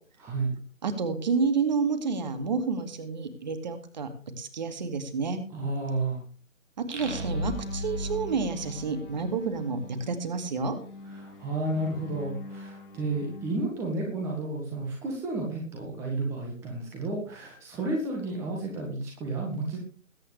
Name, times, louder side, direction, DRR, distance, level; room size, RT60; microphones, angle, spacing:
voice 1, 0.2-0.5 5.5-6.2 11.1-19.8, right 2 dB, 5° right, 0 dB, 1.6 m, -32 dB
voice 2, 0.8-4.1 4.4-5.4 6.8-10.8, right 4 dB, 30° right, 8 dB, 2.2 m, -29 dB
sound 1, 6.9-9.5, equal, 60° right, 5.7 m, -35 dB
sound 2, 7.0-13.6, left 2 dB, 40° left, 2.3 m, -44 dB
21.0 x 9.3 x 3.3 m, 0.39 s
figure-of-eight pair, 150°, 42 cm